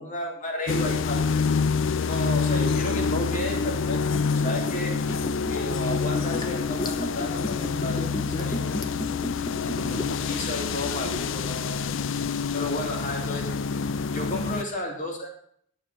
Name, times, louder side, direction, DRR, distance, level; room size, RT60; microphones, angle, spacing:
voice 1, 0.0-1.7 2.1-4.9 5.5-9.2 9.7-11.9 12.5-13.5 14.1-15.3, left 1 dB, 35° left, 0 dB, 3.1 m, -33 dB
sound 1, 0.7-14.6, left 5 dB, 65° left, 0.5 m, -27 dB
Liquid, 4.1-10.3 10.6-10.7, left 1 dB, 20° left, 1.0 m, -33 dB
12.0 x 7.0 x 6.2 m, 0.63 s
head